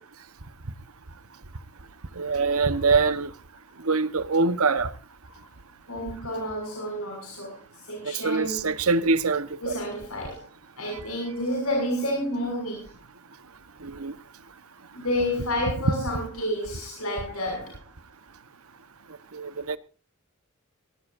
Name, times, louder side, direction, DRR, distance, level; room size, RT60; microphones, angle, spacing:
voice 1, 2.2-3.3 3.8-4.9 8.0-9.8 13.8-14.1 19.3-19.8, right 4 dB, 80° right, 1.1 m, -24 dB
voice 2, 5.9-8.6 9.6-10.5 10.8-12.9 14.9-17.7, left 1 dB, 80° left, 6.3 m, -30 dB
20.0 x 18.0 x 2.6 m
head